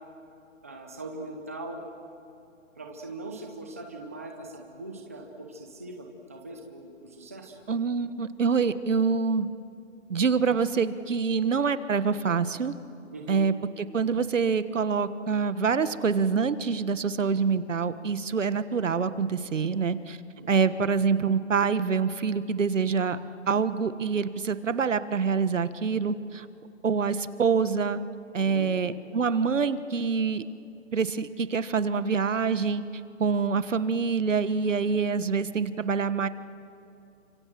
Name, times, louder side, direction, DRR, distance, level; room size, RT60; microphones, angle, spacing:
voice 1, 0.6-1.8 2.8-7.6 13.1-13.4 20.4-20.6 28.4-28.7, right 2 dB, 10° right, 2 dB, 0.7 m, -41 dB
voice 2, 7.7-9.5 10.1-12.7 13.3-13.5 13.9-20.2 20.5-23.2 23.5-26.4 26.8-28.0 28.3-30.4 30.9-32.8 33.2-36.3, right 5 dB, 65° right, 13 dB, 1.4 m, -26 dB
30.0 x 25.5 x 7.6 m, 2.6 s
hypercardioid pair, 170°, 40 cm